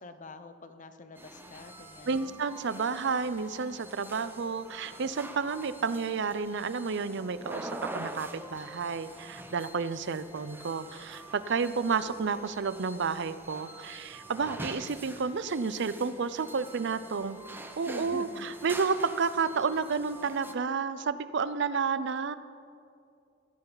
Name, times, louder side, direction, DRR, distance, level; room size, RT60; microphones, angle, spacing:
voice 1, 0.0-2.4 17.9-18.5, left 2 dB, 40° left, 9 dB, 0.9 m, -46 dB
sound 1, 1.2-20.5, right 1 dB, 10° right, 0.8 m, -45 dB
voice 2, 2.1-22.3, right 5 dB, 65° right, 14 dB, 0.6 m, -31 dB
17.0 x 14.0 x 4.0 m, 2.4 s
head